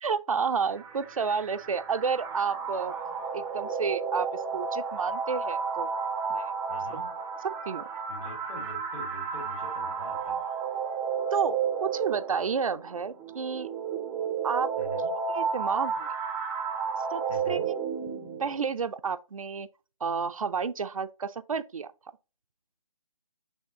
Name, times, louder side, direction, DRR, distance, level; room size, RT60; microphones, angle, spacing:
voice 1, 0.0-2.9 3.3-6.0 6.3-6.5 7.7-7.9 11.3-13.7 14.4-14.7 15.3-16.1 17.1-17.6 18.4-19.7 20.0-21.9, right 6 dB, 70° right, 0.5 m, -30 dB
sound 1, 0.6-18.6, right 6 dB, 5° right, 0.4 m, -32 dB
voice 2, 6.7-7.2 8.1-10.5 14.8-15.1 17.3-17.7, left 2 dB, 70° left, 2.0 m, -44 dB
6.3 x 2.8 x 2.8 m
figure-of-eight pair, 150°, 19 cm